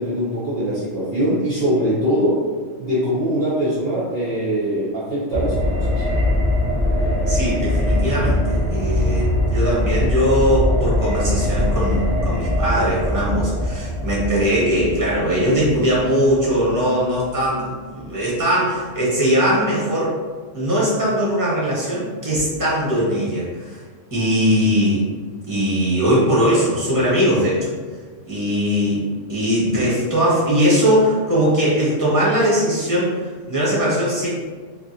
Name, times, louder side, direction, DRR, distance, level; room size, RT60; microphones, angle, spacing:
voice 1, 0.0-2.4 2.8-6.0, equal, 55° right, -8 dB, 0.8 m, -22 dB
sound 1, 5.3-17.2 17.5-17.6, left 1 dB, 50° left, 0.6 m, -22 dB
voice 2, 7.3-20.1 20.5-23.8 24.1-25.0 25.5-27.7 28.3-29.0 29.3-34.3, equal, 15° right, -7 dB, 0.9 m, -20 dB
2.9 x 2.4 x 2.7 m, 1.5 s
omnidirectional pair, 1.3 m